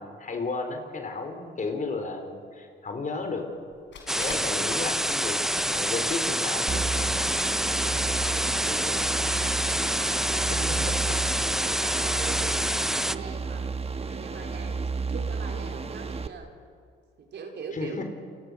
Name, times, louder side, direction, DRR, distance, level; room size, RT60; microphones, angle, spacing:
voice 1, 0.0-3.5 4.2-7.1 10.0-10.2 10.5-11.4 14.1-14.2 17.7-18.0, left 3 dB, 40° left, 5 dB, 4.3 m, -34 dB
sound 1, 3.7-5.2 5.5-6.0 6.3-6.4 7.1-7.2 7.4-7.5 7.9-8.0 8.4-8.5, left 6 dB, 65° left, 4.8 m, -43 dB
sound 2, 4.1-13.2, equal, ahead, 0.6 m, -27 dB
sound 3, 6.7-16.3, right 4 dB, 30° right, 1.4 m, -32 dB
voice 2, 7.0-11.4 11.6-16.6 17.2-18.0, right 5 dB, 60° right, 2 dB, 4.4 m, -42 dB
29.0 x 24.5 x 6.5 m, 2.3 s
cardioid pair, 90°, 20 cm